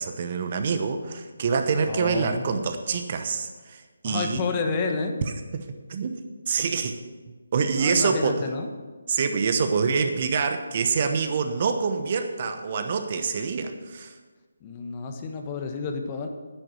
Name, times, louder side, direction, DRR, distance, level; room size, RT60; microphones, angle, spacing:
voice 1, 0.0-4.4 5.9-7.0 7.5-8.4 9.1-14.1, right 5 dB, 40° right, 7 dB, 1.0 m, -26 dB
voice 2, 1.9-2.4 4.0-5.2 7.7-8.7 14.6-16.3, left 4 dB, 25° left, 4 dB, 1.2 m, -30 dB
10.0 x 9.1 x 6.3 m, 1.4 s
figure-of-eight pair, 150°, 0 cm